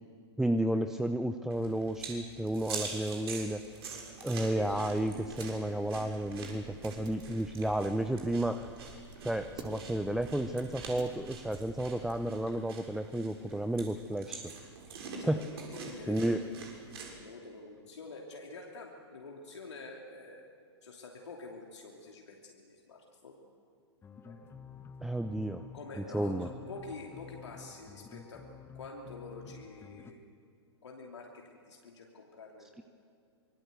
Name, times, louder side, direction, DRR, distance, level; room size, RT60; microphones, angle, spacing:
voice 1, 0.4-3.6 4.2-8.7 9.2-14.5 15.2-15.4 16.1-16.4 25.0-25.6 26.1-26.5, right 1 dB, 5° right, 9 dB, 0.7 m, -32 dB
sound 1, 1.5-17.1, right 4 dB, 60° right, 7.0 m, -45 dB
sound 2, 4.4-12.5, right 4 dB, 30° right, 4.1 m, -51 dB
voice 2, 15.2-16.3 17.1-20.4 20.8-23.4 24.2-24.4 25.7-28.4 28.7-30.2 30.8-32.8, left 3 dB, 75° left, 0 dB, 3.0 m, -47 dB
sound 3, 24.0-30.1, left 6 dB, 15° left, 1.3 m, -50 dB
26.0 x 22.5 x 8.2 m, 2.2 s
figure-of-eight pair, 105°, 15 cm